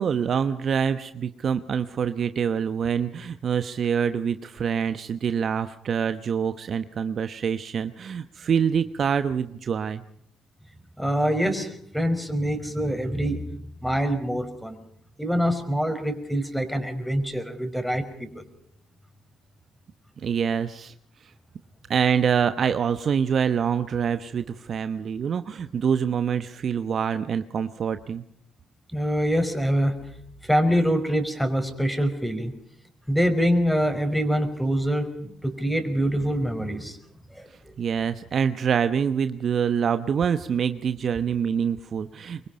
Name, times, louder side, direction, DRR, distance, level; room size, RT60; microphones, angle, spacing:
voice 1, 0.0-10.0 20.2-20.9 21.9-28.2 37.8-42.5, right 7 dB, 55° right, 10 dB, 1.0 m, -25 dB
voice 2, 11.0-13.4 13.8-14.8 15.2-18.4 28.9-29.9 30.4-32.5 33.1-37.0 37.3-37.7, equal, ahead, 8 dB, 5.1 m, -25 dB
25.0 x 23.0 x 5.3 m, 0.66 s
hypercardioid pair, 55°, 0 cm